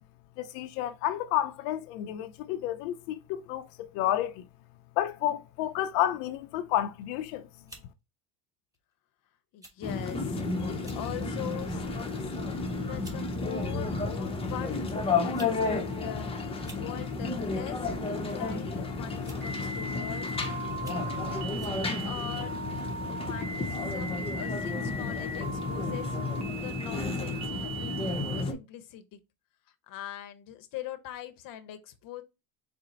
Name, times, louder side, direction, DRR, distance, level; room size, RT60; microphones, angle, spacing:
voice 1, 0.4-4.4 5.0-7.5, left 12 dB, 85° left, 0.6 m, -30 dB
sound 1, 7.0-7.2 7.7-7.9 8.7-8.9 9.6-9.8 10.1-10.2 10.7-11.1 11.6-11.8 12.6-12.7 13.0-13.2 14.3-14.4 15.1-15.6 15.8-15.9 16.5-16.9 18.1-18.4 19.2-19.6 20.1-20.2 20.7-21.1 21.6-21.8, right 1 dB, 10° right, 1.1 m, -50 dB
voice 2, 9.5-12.3 12.8-20.3 20.8-22.6 23.1-29.2 29.7-32.2, left 12 dB, 45° left, 0.7 m, -43 dB
sound 2, 9.8-28.5, left 3 dB, 15° left, 0.6 m, -32 dB
sound 3, 19.4-28.4, right 3 dB, 60° right, 1.5 m, -39 dB
4.2 x 2.0 x 3.8 m
cardioid pair, 125°, 45 cm